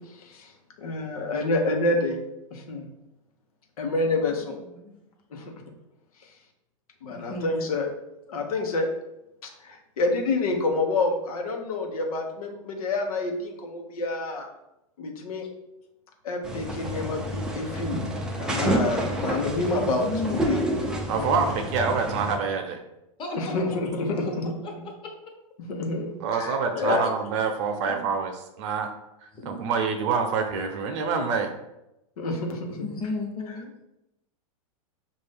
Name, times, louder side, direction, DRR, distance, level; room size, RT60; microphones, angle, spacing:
voice 1, 0.1-0.5 0.8-2.2 2.5-2.9 3.8-4.5 5.3-5.4 7.0-7.9 8.3-8.9 9.4-14.5 15.0-15.5 16.2-18.0 18.4-20.6 21.1-21.5 23.4-24.5 25.6-27.1 32.2-32.9, left 2 dB, 85° left, 3 dB, 1.1 m, -28 dB
voice 2, 4.6-5.0 5.4-5.5 7.0-7.6 19.7-20.5 23.2-23.5 24.2-24.3 24.6-24.7 27.9-28.1 29.3-29.7 32.7-33.7, left 3 dB, 30° left, 0 dB, 1.1 m, -34 dB
sound 1, 16.4-22.4, right 1 dB, 5° right, 0.5 m, -29 dB
voice 3, 21.1-22.8 26.2-28.9 29.4-31.5, right 5 dB, 55° right, 5 dB, 0.8 m, -26 dB
5.4 x 2.6 x 3.5 m, 0.89 s
hypercardioid pair, 135°, 18 cm